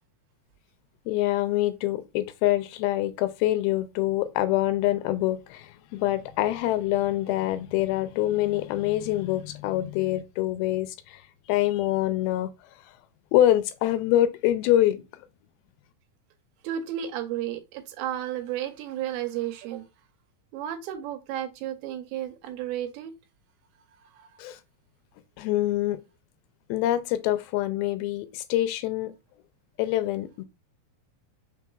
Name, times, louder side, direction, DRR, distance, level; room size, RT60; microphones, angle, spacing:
voice 1, 1.1-11.2 11.5-12.5 13.3-15.3 24.4-24.6 25.4-26.0 26.7-29.1 29.8-30.4, left 14 dB, 90° left, 2.5 m, -25 dB
voice 2, 16.6-19.9 20.5-23.1 24.1-24.4, right 11 dB, 80° right, 2.4 m, -33 dB
6.1 x 3.6 x 2.3 m
omnidirectional pair, 4.3 m